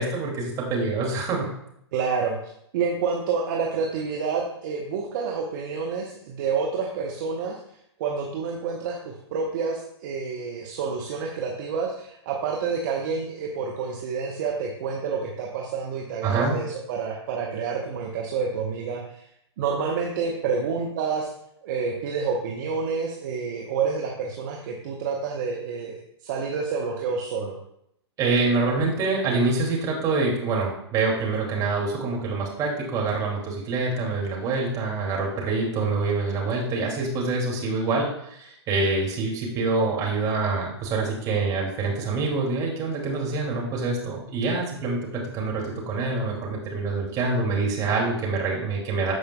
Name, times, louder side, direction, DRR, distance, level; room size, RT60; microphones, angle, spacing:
voice 1, 0.0-1.5 16.2-16.6 28.2-49.1, right 3 dB, 25° right, -2 dB, 2.3 m, -26 dB
voice 2, 1.9-7.6 8.0-19.2 19.6-21.3 21.6-27.6, right 5 dB, 45° right, -1 dB, 1.0 m, -28 dB
14.5 x 4.9 x 2.2 m, 0.75 s
figure-of-eight pair, 115°, 14 cm